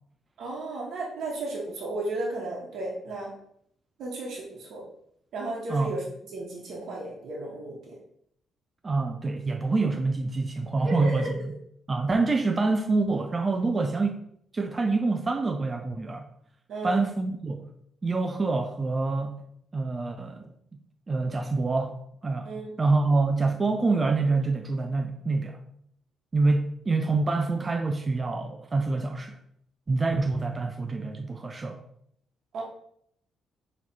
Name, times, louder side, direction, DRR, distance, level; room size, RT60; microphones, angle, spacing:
voice 1, 0.4-3.3 4.0-4.8 5.3-6.0 6.3-8.0 10.8-11.3 16.7-17.0 22.4-22.7 32.5-32.6, right 2 dB, 70° right, -3 dB, 1.2 m, -34 dB
voice 2, 8.8-11.5 11.9-14.2 14.5-16.3 16.8-17.7 18.0-19.4 19.7-20.5 21.1-22.0 22.2-22.5 22.8-25.6 26.3-29.4 29.9-31.8, right 3 dB, 30° right, 5 dB, 0.4 m, -26 dB
4.0 x 3.1 x 4.1 m, 0.69 s
cardioid pair, 90°, 0 cm